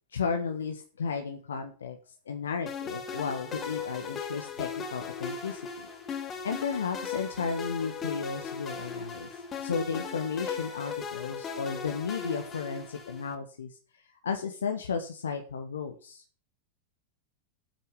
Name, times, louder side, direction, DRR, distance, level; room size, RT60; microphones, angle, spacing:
voice 1, 0.1-2.0 2.3-5.9 6.4-9.3 9.6-13.7 14.2-16.2, left 5 dB, 70° left, 5 dB, 1.5 m, -33 dB
sound 1, 2.7-13.3, left 5 dB, 25° left, 2.3 m, -38 dB
9.2 x 8.8 x 7.8 m, 0.39 s
figure-of-eight pair, 90°, 0 cm